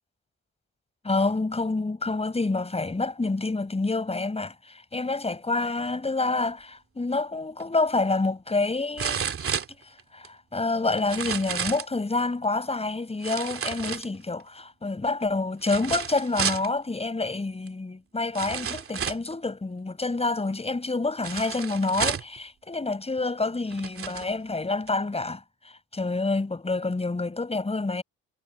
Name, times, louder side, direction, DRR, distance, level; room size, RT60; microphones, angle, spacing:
voice 1, 1.0-9.2 10.1-28.0, left 3 dB, 20° left, 6.5 m, -28 dB
sound 1, 7.6-7.7 9.0-10.3 11.0-11.9 13.2-14.4 15.6-16.7 17.7-17.8 18.3-19.3 21.2-22.4 23.2-23.3 23.7-24.3 24.9-25.0, right 7 dB, 45° right, 2.6 m, -31 dB
cardioid pair, 90°, 30 cm